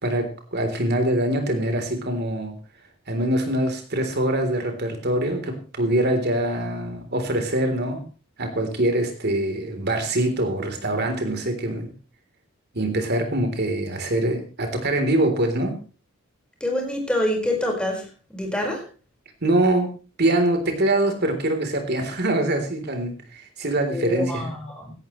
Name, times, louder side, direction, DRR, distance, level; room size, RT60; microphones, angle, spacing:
voice 1, 0.0-2.5 3.1-8.0 8.4-11.9 12.7-15.8 19.4-19.9 20.2-24.5, right 1 dB, 50° right, 5 dB, 3.6 m, -24 dB
voice 2, 16.6-18.8 23.9-24.9, left 1 dB, 5° left, 1 dB, 5.0 m, -26 dB
17.5 x 14.0 x 3.2 m, 0.35 s
head